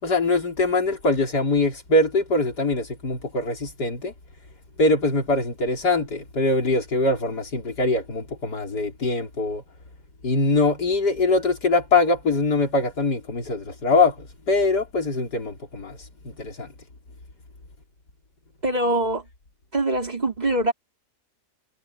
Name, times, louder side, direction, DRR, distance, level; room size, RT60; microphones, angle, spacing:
voice 1, 0.0-4.1 4.8-9.6 10.2-16.7, left 2 dB, 90° left, 4.5 m, -23 dB
voice 2, 18.6-19.2 19.7-20.7, right 1 dB, 25° right, 4.0 m, -23 dB
omnidirectional pair, 1.7 m